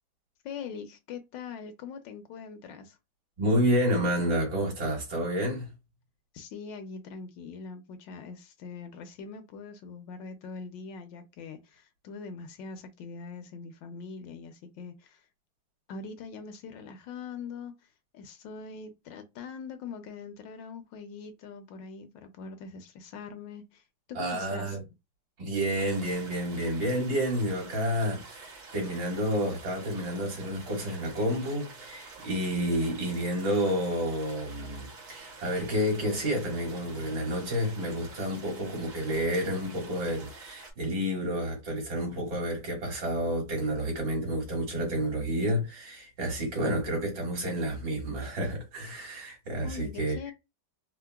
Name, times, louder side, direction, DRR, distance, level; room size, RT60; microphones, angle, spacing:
voice 1, 0.4-3.0 6.3-15.3 15.9-24.8 49.6-50.3, left 5 dB, 75° left, 1.2 m, -42 dB
voice 2, 3.4-5.7 24.2-24.8 25.4-50.2, equal, 70° right, 2.4 m, -30 dB
sound 1, 25.8-40.7, right 3 dB, 55° right, 1.1 m, -48 dB
4.5 x 2.0 x 2.2 m
omnidirectional pair, 2.1 m